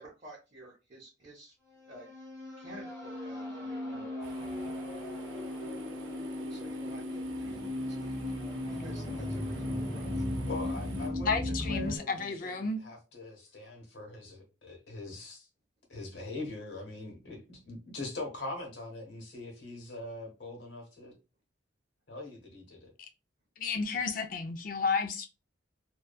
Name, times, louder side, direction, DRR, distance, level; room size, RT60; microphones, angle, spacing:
voice 1, 0.0-1.5 1.9-2.1 2.6-4.1 6.5-8.3 8.7-10.3, right 1 dB, 40° right, 0.7 m, -51 dB
sound 1, 1.7-12.0, left 1 dB, 10° left, 0.9 m, -36 dB
sound 2, 4.2-11.1, right 4 dB, 85° right, 0.5 m, -51 dB
voice 2, 10.5-15.5 15.9-21.2 22.1-22.9, left 2 dB, 70° left, 1.0 m, -42 dB
voice 3, 11.2-12.8 23.6-25.3, left 4 dB, 45° left, 0.4 m, -32 dB
2.7 x 2.2 x 2.3 m
head